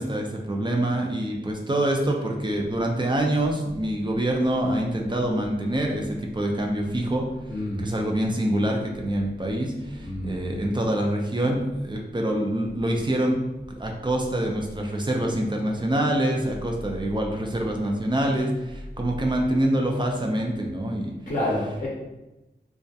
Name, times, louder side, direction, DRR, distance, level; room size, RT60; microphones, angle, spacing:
voice 1, 0.0-7.3 7.8-13.3 13.8-21.1, right 1 dB, 25° right, 1 dB, 0.5 m, -25 dB
voice 2, 7.5-7.8 10.0-10.3 21.3-21.9, left 1 dB, 45° left, -5 dB, 0.6 m, -28 dB
2.3 x 2.1 x 2.7 m, 1.0 s
wide cardioid pair, 45°, 19 cm